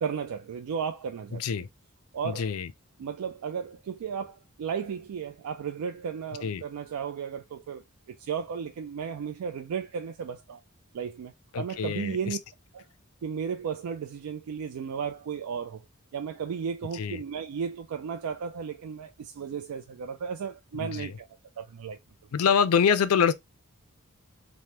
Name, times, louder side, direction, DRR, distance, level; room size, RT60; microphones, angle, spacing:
voice 1, 0.0-1.4 2.1-2.5 3.0-10.6 10.9-12.4 12.7-12.8 13.2-15.8 16.1-21.3 21.6-22.0, right 7 dB, 85° right, 0.3 m, -34 dB
voice 2, 1.3-1.7 2.2-2.7 6.4-6.6 11.5-12.4 16.9-17.2 20.8-21.1 22.3-23.3, left 7 dB, 80° left, 0.4 m, -25 dB
3.3 x 2.1 x 2.8 m
head